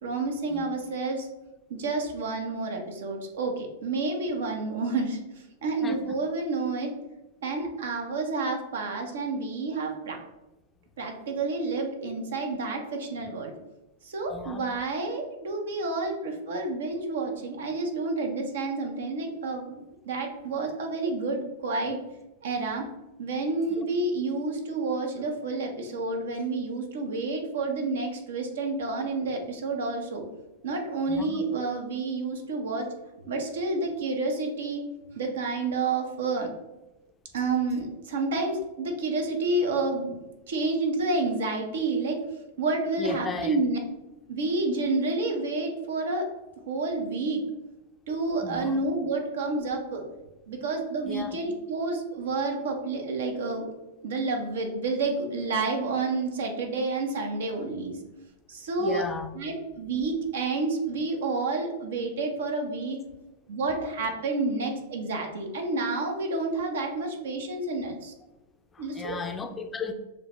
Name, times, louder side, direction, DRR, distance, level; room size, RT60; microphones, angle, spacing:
voice 1, 0.0-1.3 1.7-6.9 7.4-10.2 11.0-13.5 14.0-19.8 20.1-22.0 22.4-22.8 23.2-30.2 30.6-32.9 33.3-34.8 35.1-36.5 37.3-40.2 40.5-42.2 42.6-43.8 44.3-46.3 46.7-47.4 48.1-50.0 50.5-53.7 54.0-58.0 58.5-59.1 59.3-63.0 63.5-68.1 68.8-69.2, right 3 dB, 75° right, 3 dB, 0.9 m, -29 dB
voice 2, 14.3-14.6 23.8-23.9 31.1-31.4 43.0-43.6 48.4-48.8 51.1-51.3 58.8-59.3 68.8-69.9, left 4 dB, 20° left, 6 dB, 0.5 m, -35 dB
6.4 x 2.3 x 3.0 m, 0.99 s
hypercardioid pair, 110°, 0 cm